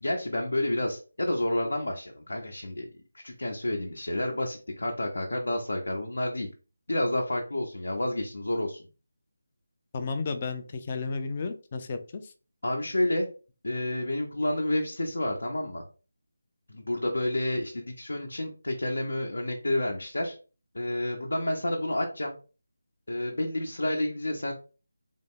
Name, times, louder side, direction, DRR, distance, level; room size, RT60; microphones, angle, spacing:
voice 1, 0.0-2.9 3.1-6.5 6.9-8.8 12.6-13.3 13.6-15.8 16.7-20.4 20.7-22.3 23.1-24.5, left 1 dB, 75° left, 1 dB, 0.8 m, -29 dB
voice 2, 9.9-12.3, left 4 dB, 30° left, 9 dB, 0.4 m, -33 dB
3.8 x 2.1 x 3.6 m, 0.35 s
figure-of-eight pair, 165°, 0 cm